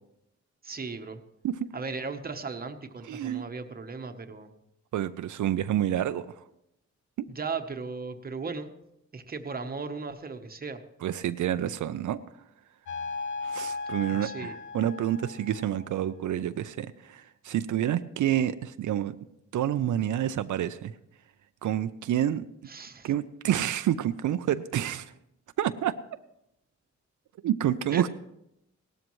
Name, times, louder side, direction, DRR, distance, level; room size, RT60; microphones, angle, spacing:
voice 1, 0.6-1.2 1.7-4.5 7.3-8.7 9.1-10.8 14.1-14.5 22.7-23.1 27.9-28.0, right 4 dB, 30° right, 7 dB, 1.0 m, -36 dB
voice 2, 3.0-3.4 4.9-6.4 11.0-12.2 13.4-19.2 19.5-20.9 21.6-22.4 23.0-25.1 25.6-26.0 27.4-28.1, right 11 dB, 85° right, 11 dB, 0.5 m, -28 dB
sound 1, 12.9-16.0, left 4 dB, 80° left, 0.8 m, -37 dB
18.0 x 13.0 x 3.1 m, 0.82 s
wide cardioid pair, 130°, 29 cm